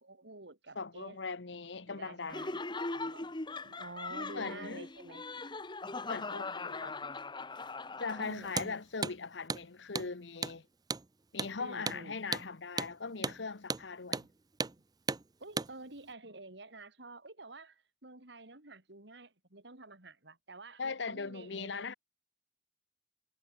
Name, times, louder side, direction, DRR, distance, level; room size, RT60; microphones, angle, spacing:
voice 1, 0.0-1.2 1.8-2.6 2.9-3.3 3.6-5.2 8.2-8.8 11.6-12.2 15.4-22.0, right 2 dB, 70° right, 3.4 m, -50 dB
voice 2, 0.7-2.5 4.3-4.9 6.0-7.0 8.0-10.7 11.3-14.3 20.8-21.9, left 4 dB, 80° left, 1.1 m, -40 dB
Laughter, 2.3-8.6, left 3 dB, 25° left, 1.4 m, -40 dB
Hammer, 8.5-8.7 9.0-9.2 9.5-9.6 10.0-10.1 10.4-10.6 10.9-11.1 11.4-11.5 11.9-12.0 12.3-12.5 12.8-12.9 13.2-13.4 13.7-13.9 14.1-14.3 14.6-14.8 15.1-15.2 15.6-15.7, right 4 dB, 20° right, 0.5 m, -35 dB
head